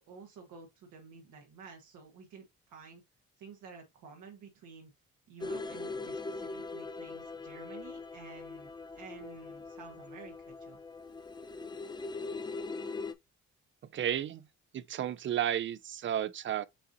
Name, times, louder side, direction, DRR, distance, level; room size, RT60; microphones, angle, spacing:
voice 1, 0.1-3.0 3.4-4.9 5.3-10.8, right 5 dB, 85° right, 1.3 m, -51 dB
sound 1, 5.4-13.1, left 3 dB, 15° left, 0.5 m, -41 dB
voice 2, 13.9-14.5 14.7-16.6, right 10 dB, 40° right, 0.4 m, -32 dB
6.8 x 2.6 x 2.6 m
cardioid pair, 90°, 30 cm